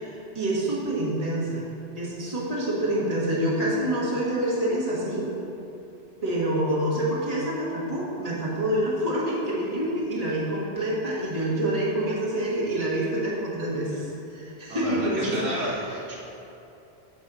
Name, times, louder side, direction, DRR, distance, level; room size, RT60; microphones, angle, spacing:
voice 1, 0.0-1.6 1.9-5.2 6.2-15.8, right 1 dB, 35° right, -7 dB, 1.6 m, -27 dB
voice 2, 14.7-16.2, equal, 90° right, -7 dB, 1.7 m, -31 dB
9.3 x 3.4 x 6.7 m, 2.8 s
omnidirectional pair, 1.1 m